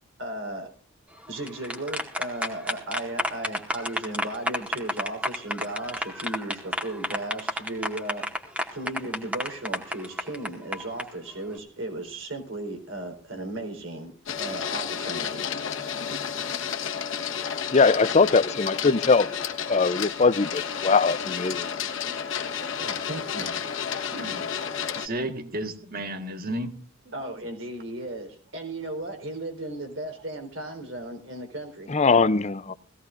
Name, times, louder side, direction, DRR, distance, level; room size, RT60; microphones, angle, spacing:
voice 1, 0.2-0.7 1.3-8.3 8.7-15.5 22.8-23.6 27.1-31.9, right 1 dB, 70° right, 4.1 m, -36 dB
sound 1, 1.3-11.0, equal, 5° right, 2.0 m, -30 dB
Printer, 14.3-25.1, left 7 dB, 75° left, 1.4 m, -31 dB
voice 2, 17.7-19.3 19.7-21.7 31.9-32.7, left 4 dB, 35° left, 0.6 m, -21 dB
voice 3, 22.0-22.9 23.6-23.7 24.1-24.4 24.9-26.8 32.7-32.8, right 1 dB, 50° right, 1.7 m, -34 dB
18.5 x 16.5 x 2.6 m
head